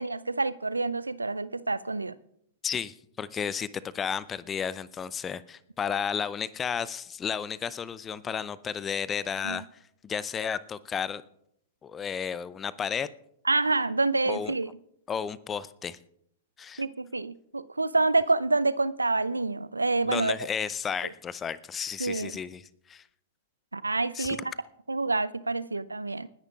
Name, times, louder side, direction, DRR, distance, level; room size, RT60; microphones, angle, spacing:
voice 1, 0.0-2.1 9.4-9.6 13.5-14.7 16.8-20.4 22.0-22.3 23.7-24.5 24.9-26.3, right 3 dB, 85° right, 17 dB, 0.4 m, -27 dB
voice 2, 2.6-9.7 10.0-11.2 11.8-13.1 14.2-14.5 15.1-16.0 16.6-16.8 20.0-23.0 24.1-24.4, left 7 dB, 20° left, 18 dB, 0.5 m, -33 dB
29.5 x 10.0 x 2.4 m, 0.75 s
figure-of-eight pair, 100°, 0 cm